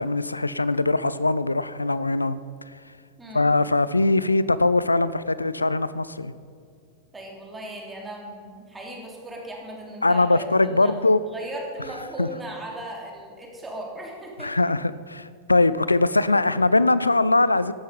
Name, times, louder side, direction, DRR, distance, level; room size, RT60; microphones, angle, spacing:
voice 1, 0.0-2.4 3.3-6.3 10.0-11.2 12.2-12.3 14.4-17.7, left 2 dB, 80° left, 16 dB, 0.5 m, -21 dB
voice 2, 7.1-10.9 11.3-14.5, right 1 dB, 10° right, -1 dB, 3.1 m, -37 dB
14.5 x 11.0 x 5.3 m, 2.3 s
figure-of-eight pair, 90°, 0 cm